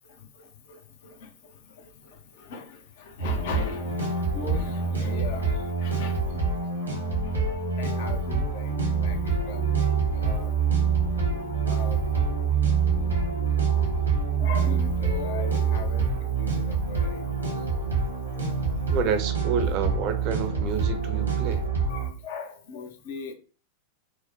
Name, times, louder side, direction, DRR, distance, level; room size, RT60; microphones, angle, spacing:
voice 1, 0.1-7.4 7.8-10.5 11.6-12.0 14.4-16.1 16.4-17.3 21.9-23.3, left 5 dB, 55° left, 6 dB, 0.6 m, -40 dB
sound 1, 3.2-22.1, right 5 dB, 80° right, 1.0 m, -26 dB
voice 2, 18.9-21.6, right 6 dB, 40° right, 7 dB, 0.6 m, -29 dB
4.5 x 2.1 x 2.7 m, 0.36 s
figure-of-eight pair, 90°, 0 cm